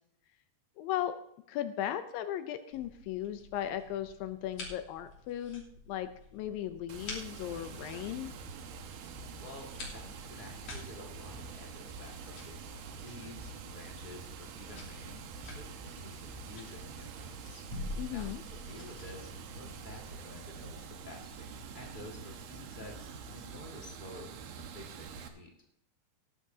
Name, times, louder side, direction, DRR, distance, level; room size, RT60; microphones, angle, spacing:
voice 1, 0.8-1.2 1.5-8.3 18.0-18.4, left 11 dB, 80° left, 10 dB, 2.3 m, -37 dB
sound 1, 2.7-22.4, left 2 dB, 55° left, 4.4 m, -49 dB
Water, 6.9-25.3, right 5 dB, 85° right, 2.9 m, -46 dB
voice 2, 9.4-17.6 18.1-25.5, left 1 dB, 35° left, -1 dB, 0.7 m, -51 dB
18.5 x 11.0 x 2.8 m, 0.74 s
omnidirectional pair, 4.2 m